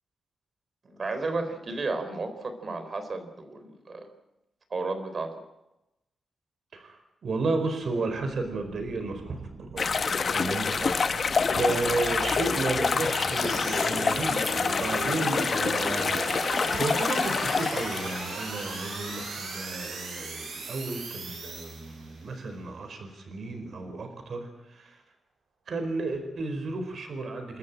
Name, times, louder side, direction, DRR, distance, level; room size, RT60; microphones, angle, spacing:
voice 1, 0.8-4.1 4.7-5.3 10.7-11.0, right 3 dB, 40° right, 8 dB, 4.0 m, -33 dB
voice 2, 6.7-10.0 10.3-10.7 11.4-25.0 25.7-27.6, right 3 dB, 55° right, 6 dB, 4.7 m, -33 dB
sound 1, 7.8-22.3, right 3 dB, 85° right, 6.0 m, -38 dB
sound 2, 9.8-18.2, left 5 dB, 45° left, 0.8 m, -27 dB
29.0 x 13.5 x 9.0 m, 0.92 s
wide cardioid pair, 145°, 0 cm